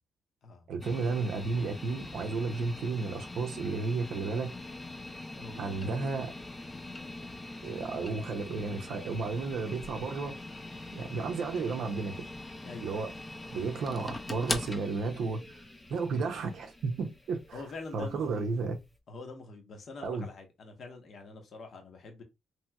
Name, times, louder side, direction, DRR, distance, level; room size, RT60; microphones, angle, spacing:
voice 1, 0.7-4.5 5.6-6.3 7.6-10.4 10.9-12.3 12.8-13.1 13.5-15.6 15.9-17.6 17.9-18.8 20.0-20.3, right 4 dB, 70° right, 0.5 m, -33 dB
sound 1, 0.8-18.9, left 2 dB, 20° left, 0.5 m, -42 dB
voice 2, 5.4-6.3 7.6-7.8 12.6-13.1 17.5-18.5 19.1-22.2, left 3 dB, 55° left, 0.9 m, -45 dB
3.0 x 2.8 x 2.2 m
cardioid pair, 90°, 0 cm